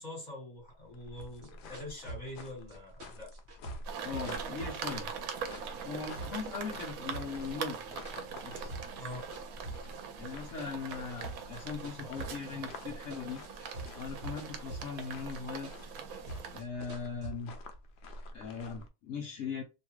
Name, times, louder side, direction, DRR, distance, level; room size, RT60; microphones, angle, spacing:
voice 1, 0.0-3.3 8.9-9.2, left 1 dB, 30° left, -2 dB, 1.6 m, -44 dB
sound 1, 0.5-18.9, left 2 dB, 90° left, 0.4 m, -49 dB
sound 2, 1.2-5.3 5.5-7.5 7.7-9.1 9.3-12.9 13.1-15.1 15.3-17.3, right 2 dB, 55° right, 1.0 m, -45 dB
sound 3, 3.8-16.6, right 6 dB, 80° right, 1.1 m, -42 dB
voice 2, 4.0-5.1 5.8-7.8 8.4-8.7 10.2-13.4 13.9-15.7 16.5-17.5 18.3-19.6, left 5 dB, 70° left, -1 dB, 1.0 m, -39 dB
2.9 x 2.3 x 3.0 m, 0.28 s
omnidirectional pair, 1.5 m